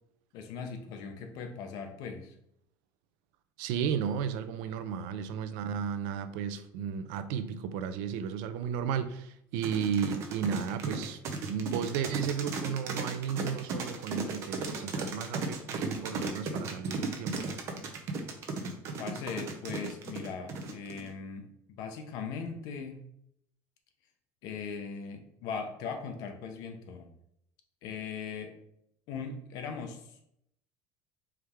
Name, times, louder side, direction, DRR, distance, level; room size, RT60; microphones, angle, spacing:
voice 1, 0.3-2.3 19.0-23.1 24.4-27.1 27.8-28.6 29.1-30.2, left 5 dB, 55° left, 0.7 m, -39 dB
voice 2, 3.6-11.2 11.5-17.5, right 7 dB, 85° right, 0.4 m, -34 dB
sound 1, 9.6-21.1, right 4 dB, 40° right, 0.6 m, -35 dB
4.6 x 3.3 x 3.5 m
cardioid pair, 180°, 7 cm